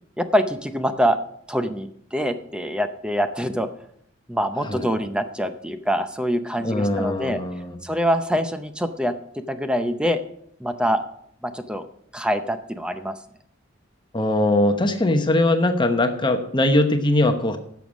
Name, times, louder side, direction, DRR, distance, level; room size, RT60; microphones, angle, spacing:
voice 1, 0.2-1.2 1.5-3.7 4.3-7.4 7.8-10.2 10.6-11.0 11.4-11.8 12.1-13.2, equal, 5° right, 9 dB, 0.6 m, -24 dB
voice 2, 6.6-7.8 14.1-17.6, left 1 dB, 25° left, 7 dB, 0.9 m, -21 dB
11.5 x 7.1 x 6.3 m, 0.69 s
head